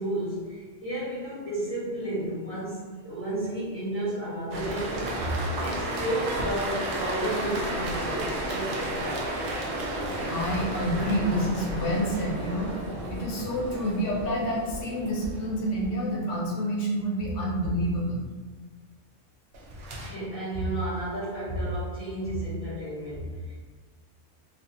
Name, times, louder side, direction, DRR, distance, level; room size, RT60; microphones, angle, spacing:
voice 1, 0.0-9.5 17.2-17.3 19.9-23.5, right 1 dB, 10° right, -12 dB, 1.2 m, -32 dB
sound 1, 4.5-16.0 19.5-20.1, right 1 dB, 65° right, 0.7 m, -33 dB
voice 2, 10.2-12.7 13.1-18.2, equal, 80° left, -2 dB, 0.9 m, -28 dB
2.5 x 2.3 x 2.6 m, 1.4 s
omnidirectional pair, 1.2 m